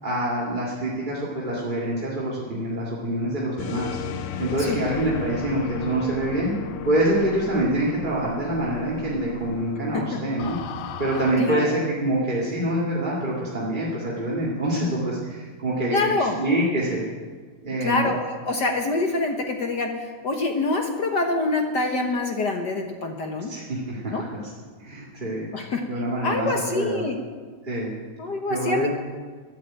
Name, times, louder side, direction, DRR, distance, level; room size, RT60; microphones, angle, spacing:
voice 1, 0.0-4.0 4.4-6.5 6.8-10.6 11.0-17.1 17.6-18.1 23.5-24.1 24.8-25.5 25.9-27.0 27.6-27.9 28.5-28.9, right 1 dB, 20° right, -6 dB, 2.0 m, -26 dB
sound 1, 3.6-11.3, left 8 dB, 85° left, 2.2 m, -35 dB
voice 2, 11.4-11.7 15.9-16.4 17.8-23.5 24.1-24.2 25.5-25.8 26.2-27.2 28.2-28.9, left 3 dB, 60° left, 4 dB, 1.1 m, -25 dB
13.5 x 11.0 x 8.9 m, 1.5 s
omnidirectional pair, 3.5 m